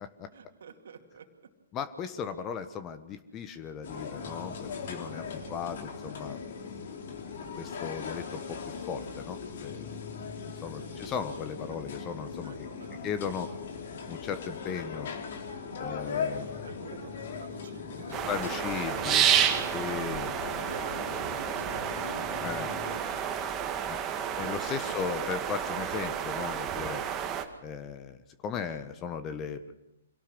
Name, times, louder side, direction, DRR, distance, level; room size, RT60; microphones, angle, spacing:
voice 1, 0.3-1.5 5.2-5.6 10.7-11.2 11.7-11.8 12.4-13.0 16.0-16.3 16.6-20.1 20.6-24.0 24.9-25.0, right 6 dB, 65° right, 4 dB, 2.6 m, -49 dB
voice 2, 1.7-6.4 7.5-8.6 8.9-10.0 10.6-12.7 13.0-13.5 14.1-15.1 15.8-16.9 18.2-19.3 19.7-20.4 22.4-22.7 23.9-24.0 24.4-27.0 27.6-29.7, left 7 dB, 25° left, 10 dB, 1.3 m, -37 dB
sound 1, 3.8-23.0, left 5 dB, 55° left, 3.2 m, -39 dB
sound 2, 18.1-27.5, right 9 dB, 25° right, 1.9 m, -30 dB
26.0 x 17.5 x 6.2 m, 0.90 s
figure-of-eight pair, 120°, 0 cm